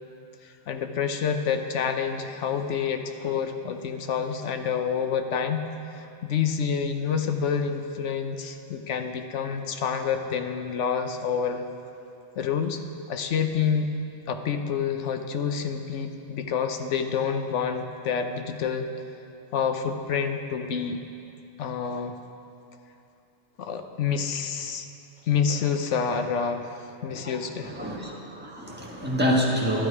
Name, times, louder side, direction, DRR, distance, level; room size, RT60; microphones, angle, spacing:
voice 1, 0.7-5.6 6.0-11.6 12.4-12.8 13.1-13.9 14.3-18.9 19.5-21.0 21.6-22.2 23.6-24.9 25.3-26.7 27.0-27.7, left 6 dB, 85° left, 7 dB, 1.1 m, -28 dB
voice 2, 27.6-29.9, equal, 10° right, -4 dB, 1.5 m, -26 dB
12.0 x 10.5 x 4.8 m, 2.7 s
omnidirectional pair, 1.2 m